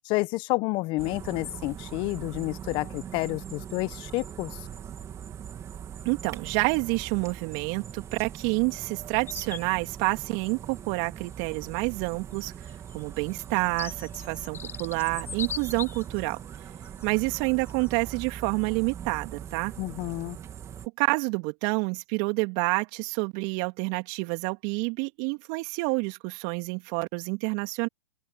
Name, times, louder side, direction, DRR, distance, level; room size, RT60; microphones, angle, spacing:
voice 1, 0.0-4.6 19.8-20.4, left 22 dB, 40° left, 1.2 m, -30 dB
sound 1, 1.0-20.9, right 9 dB, 25° right, 3.0 m, -41 dB
voice 2, 6.0-12.5 12.9-16.4 17.0-19.7 21.0-27.9, right 30 dB, 45° right, 3.2 m, -28 dB
sound 2, 9.3-9.7 11.2-11.3 12.4-16.2 16.8-17.0 17.7-17.9, left 7 dB, 20° left, 1.1 m, -39 dB
open air
hypercardioid pair, 115°, 13 cm